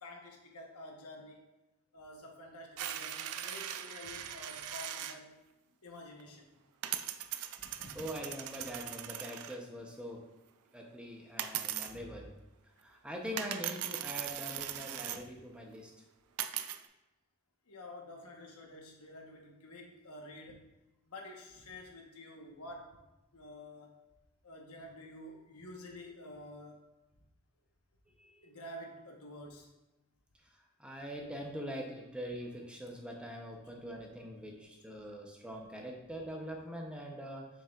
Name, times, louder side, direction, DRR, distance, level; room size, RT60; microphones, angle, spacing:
voice 1, 0.0-1.4 1.9-5.3 5.8-6.5 7.8-8.0 11.9-12.1 15.1-15.2 17.7-20.6 21.0-23.0 23.3-23.9 24.4-26.8 28.4-29.7, left 1 dB, 85° left, 1 dB, 1.2 m, -49 dB
sound 1, 2.8-5.2 6.2-6.3 6.8-9.6 11.4-11.9 13.4-15.2 16.4-16.8, right 11 dB, 85° right, 0.4 m, -39 dB
voice 2, 7.9-10.3 10.7-12.3 12.8-15.9 28.2-28.5 30.5-37.5, equal, 5° right, 0 dB, 0.7 m, -43 dB
7.2 x 5.8 x 2.4 m, 1.0 s
head